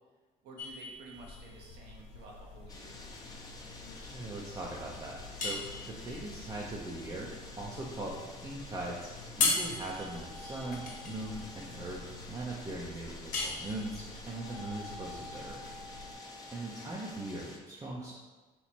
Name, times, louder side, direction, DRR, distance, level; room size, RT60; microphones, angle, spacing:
voice 1, 0.4-3.1 16.6-16.9, right 2 dB, 80° right, -2 dB, 0.9 m, -52 dB
sound 1, 0.6-17.4, left 3 dB, 50° left, 1.0 m, -39 dB
Buzz, 1.1-16.1, left 3 dB, 85° left, 0.5 m, -50 dB
sound 2, 2.7-17.6, left 2 dB, 20° left, 0.6 m, -50 dB
voice 2, 3.9-7.3 7.6-9.1 9.4-12.0 12.3-15.6 16.5-18.1, right 2 dB, 20° right, -4 dB, 0.5 m, -40 dB
3.1 x 2.9 x 4.3 m, 1.3 s
cardioid pair, 110°, 17 cm